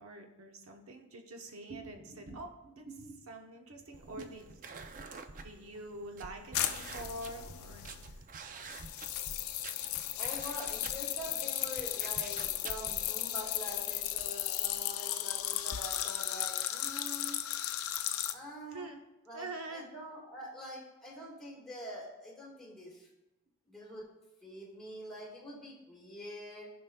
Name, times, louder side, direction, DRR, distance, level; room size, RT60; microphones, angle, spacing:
voice 1, 0.0-4.5 4.9-5.1 5.4-7.9 10.6-10.7 18.7-19.0 19.3-19.9, right 2 dB, 70° right, 4 dB, 0.9 m, -45 dB
sound 1, 3.9-13.1, right 4 dB, 35° right, 0.4 m, -48 dB
sound 2, 6.5-8.1 8.7-18.3, left 12 dB, 75° left, 0.5 m, -35 dB
voice 2, 10.2-17.4 18.2-18.9 19.3-23.1 23.7-24.1 24.4-26.7, equal, ahead, -4 dB, 1.6 m, -45 dB
15.0 x 5.2 x 2.2 m, 1.0 s
head